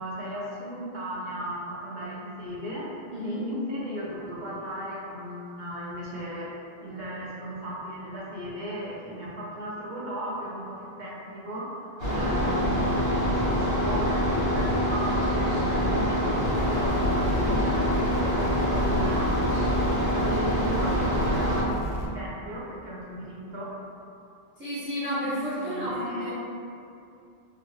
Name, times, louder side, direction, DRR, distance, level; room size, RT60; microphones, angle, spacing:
voice 1, 0.0-2.9 3.2-19.7 20.1-23.7 25.6-26.3, right 1 dB, 50° right, -7 dB, 0.7 m, -36 dB
voice 2, 3.1-3.5 24.6-26.3, equal, 10° right, -11 dB, 0.7 m, -31 dB
sound 1, 12.0-21.6, equal, 70° right, 1.4 m, -25 dB
sound 2, 16.4-22.1, left 1 dB, 65° left, 0.7 m, -33 dB
2.9 x 2.4 x 3.1 m, 2.5 s
omnidirectional pair, 1.0 m